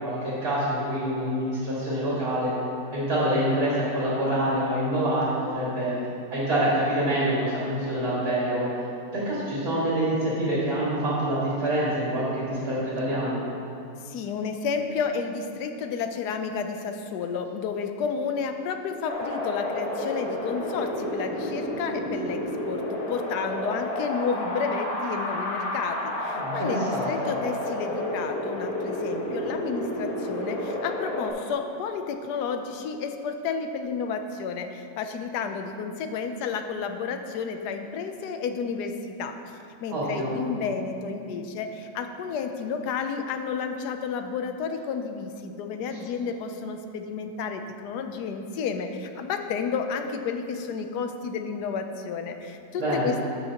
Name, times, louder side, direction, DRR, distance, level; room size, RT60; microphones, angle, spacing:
voice 1, 0.0-2.5 2.9-6.0 6.3-8.9 9.1-13.4 26.3-27.3 39.9-40.3 45.9-46.0 52.8-53.1, right 1 dB, 70° right, -8 dB, 2.5 m, -26 dB
voice 2, 14.0-39.4 39.8-53.2, left 5 dB, 90° left, 6 dB, 1.2 m, -31 dB
Wind, 19.1-31.3, left 1 dB, 40° left, 1.4 m, -31 dB
12.0 x 6.8 x 2.9 m, 2.6 s
omnidirectional pair, 1.7 m